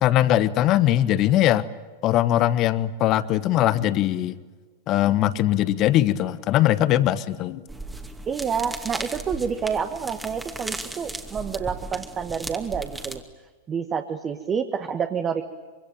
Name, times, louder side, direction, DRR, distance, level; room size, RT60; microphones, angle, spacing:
voice 1, 0.0-1.6 2.0-4.4 4.9-7.6, left 13 dB, 35° left, 16 dB, 1.3 m, -21 dB
sound 1, 7.7-13.2, right 2 dB, 5° right, 2.4 m, -36 dB
voice 2, 8.3-13.2 13.7-15.4, right 6 dB, 25° right, 6 dB, 1.6 m, -28 dB
25.5 x 25.0 x 9.2 m, 1.4 s
figure-of-eight pair, 90°, 0 cm